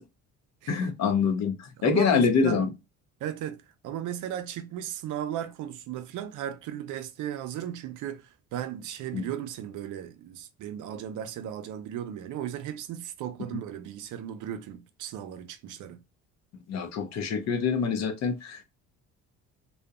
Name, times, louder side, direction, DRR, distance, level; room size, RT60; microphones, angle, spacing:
voice 1, 0.7-2.7 9.1-9.2 16.7-18.6, left 6 dB, 60° left, 0.6 m, -25 dB
voice 2, 1.8-2.7 3.2-3.6 3.8-16.0, right 10 dB, 70° right, 0.5 m, -36 dB
2.7 x 2.1 x 2.3 m
cardioid pair, 110°, 32 cm